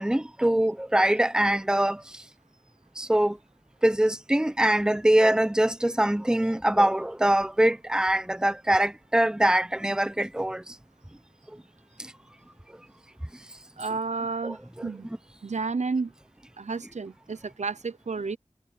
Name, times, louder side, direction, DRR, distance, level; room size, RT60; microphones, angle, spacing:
voice 1, 0.0-2.0 3.0-3.4 3.8-10.6 14.4-14.6, right 1 dB, 5° right, 0.7 m, -23 dB
voice 2, 13.8-15.1 15.4-16.1 16.6-18.4, right 4 dB, 75° right, 0.8 m, -31 dB
wide cardioid pair, 65°, 12 cm